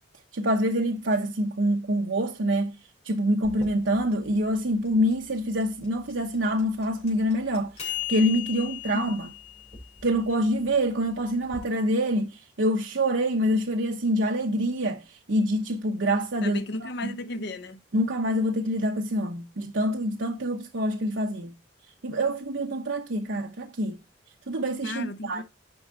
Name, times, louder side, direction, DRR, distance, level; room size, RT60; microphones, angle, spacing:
voice 1, 0.3-2.8 3.0-9.3 10.0-16.6 17.0-17.1 17.9-21.5 22.0-24.0 24.5-25.4, equal, 70° right, 0.9 m, -26 dB
sound 1, 3.4-11.6, left 11 dB, 35° left, 3.1 m, -39 dB
voice 2, 8.6-9.1 16.4-17.8 24.8-25.4, left 1 dB, 60° left, 0.8 m, -35 dB
9.7 x 5.4 x 4.0 m
head